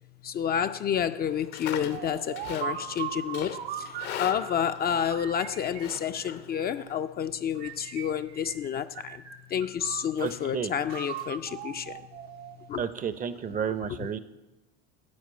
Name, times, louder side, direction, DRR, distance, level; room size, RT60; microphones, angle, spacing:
voice 1, 0.2-9.2 9.5-12.1 12.7-12.8 14.0-14.1, left 8 dB, 35° left, 0.4 m, -30 dB
Livestock farm animals working animals, 1.3-6.9, left 9 dB, 75° left, 1.0 m, -41 dB
sound 1, 1.9-4.7 5.1-6.9 7.6-8.7 9.0-10.4 10.9-12.7, right 9 dB, 80° right, 0.9 m, -39 dB
voice 2, 10.2-10.7 12.8-14.2, right 7 dB, 30° right, 0.6 m, -31 dB
9.5 x 4.7 x 7.5 m
hypercardioid pair, 85°, 29 cm